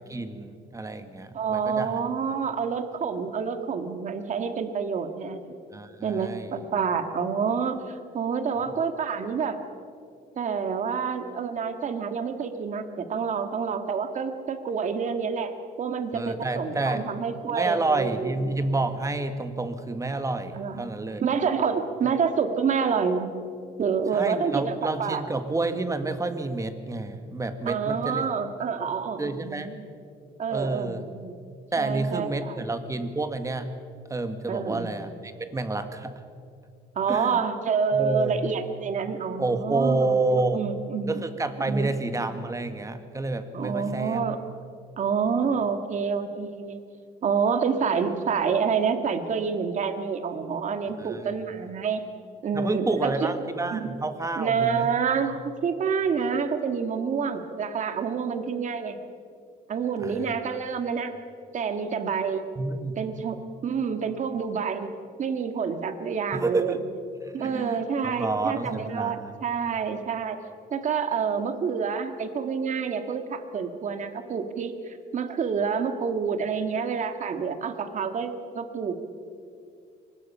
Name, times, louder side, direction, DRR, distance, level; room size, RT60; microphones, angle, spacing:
voice 1, 0.1-2.0 5.7-6.6 16.1-17.0 17.5-21.2 24.1-28.3 29.2-29.7 30.5-31.0 31.7-33.7 34.1-36.1 37.1-37.4 37.9-38.3 39.4-40.6 41.1-44.2 51.0-51.4 52.5-54.9 60.0-60.3 62.5-63.0 66.3-66.8 67.4-67.8 68.0-69.3, right 2 dB, 20° right, 9 dB, 1.6 m, -29 dB
voice 2, 1.3-5.6 6.0-9.6 10.4-15.5 15.8-18.5 20.6-20.8 21.2-23.3 23.8-25.2 27.7-29.8 30.4-31.4 31.8-32.6 34.5-34.9 37.0-41.2 41.6-41.9 43.5-44.4 45.0-46.8 47.2-52.0 52.4-53.3 53.7-53.9 54.4-59.0 59.7-61.1 61.5-62.5 63.0-63.4 63.6-64.9 65.2-66.8 67.3-70.4 70.7-78.9, right 6 dB, 45° right, 8 dB, 1.9 m, -28 dB
23.5 x 20.0 x 5.6 m, 2.4 s
cardioid pair, 110°, 17 cm